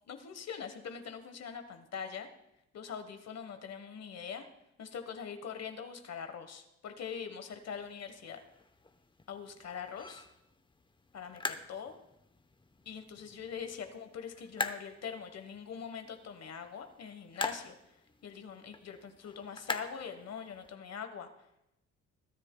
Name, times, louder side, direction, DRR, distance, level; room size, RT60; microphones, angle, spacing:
voice 1, 0.1-2.3 2.7-4.5 4.8-8.4 9.3-10.3 11.1-11.9 12.8-17.7 18.2-21.3, left 7 dB, 60° left, 8 dB, 1.3 m, -43 dB
sound 1, 7.5-20.7, left 3 dB, 15° left, 0.8 m, -44 dB
21.0 x 9.8 x 2.3 m, 0.86 s
cardioid pair, 90°, 30 cm